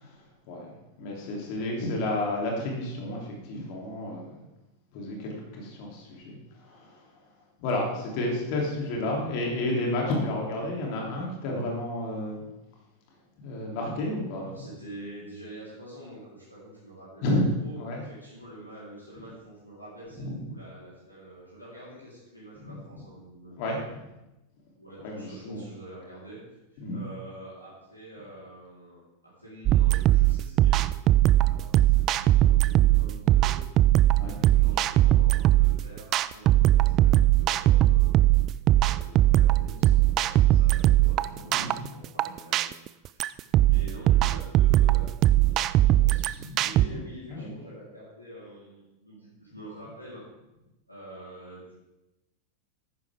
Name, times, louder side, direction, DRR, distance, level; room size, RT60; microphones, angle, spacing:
voice 1, 0.0-4.5 4.9-7.2 7.6-12.4 13.4-14.4 17.2-18.0 20.2-20.4 22.6-22.8 23.6-23.8 25.0-25.6 26.8-27.0 34.1-34.5 41.3-41.9 46.3-47.0 47.3-47.5, left 1 dB, 45° left, -1 dB, 3.2 m, -31 dB
voice 2, 14.4-17.2 17.6-23.8 24.8-26.4 26.7-31.0 31.4-33.6 34.3-38.4 38.7-43.2 43.7-50.2 50.9-51.7, right 1 dB, 85° left, -8 dB, 4.1 m, -46 dB
sound 1, 29.7-46.9, right 14 dB, 35° right, 0.3 m, -20 dB
14.0 x 10.5 x 3.7 m, 0.96 s
figure-of-eight pair, 90°, 0 cm